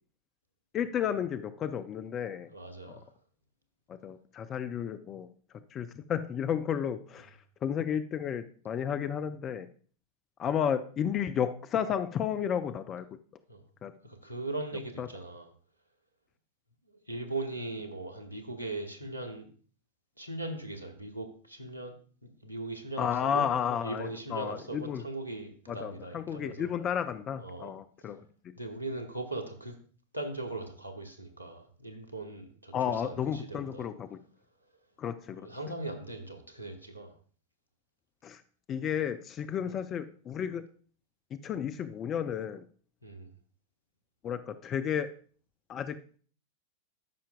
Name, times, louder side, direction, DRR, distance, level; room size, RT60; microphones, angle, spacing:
voice 1, 0.7-2.5 2.9-3.0 3.9-5.3 5.7-9.7 10.4-13.1 13.8-13.9 15.0-15.1 23.0-25.0 25.7-28.2 32.7-34.2 35.0-35.5 38.2-38.4 38.7-40.6 41.4-42.7 44.2-45.1 45.7-46.2, left 8 dB, 30° left, 11 dB, 0.4 m, -32 dB
voice 2, 2.5-3.1 13.5-13.6 14.0-15.5 17.1-19.5 20.2-21.9 22.2-23.5 23.8-26.7 27.4-27.7 28.6-29.8 30.1-33.9 35.4-37.1 39.6-39.8 43.0-43.3, right 2 dB, 90° left, 5 dB, 1.1 m, -39 dB
13.5 x 5.6 x 2.3 m, 0.43 s
figure-of-eight pair, 90°, 0 cm